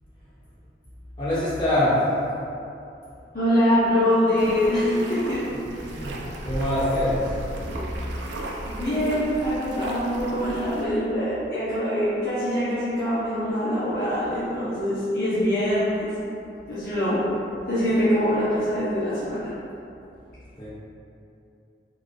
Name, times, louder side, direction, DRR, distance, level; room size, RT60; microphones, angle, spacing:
voice 1, 1.2-1.9 5.9-6.2 6.4-7.3 20.6-20.7, left 1 dB, 30° left, -13 dB, 1.4 m, -24 dB
voice 2, 3.3-5.4 5.7-5.8 8.6-16.1 16.7-17.2 17.7-19.5, equal, 55° left, -12 dB, 0.7 m, -24 dB
sound 1, 4.4-10.8, right 1 dB, 90° right, 0.4 m, -35 dB
sound 2, 7.6-10.2, equal, 55° right, 1.3 m, -39 dB
3.8 x 3.4 x 2.2 m, 2.7 s
head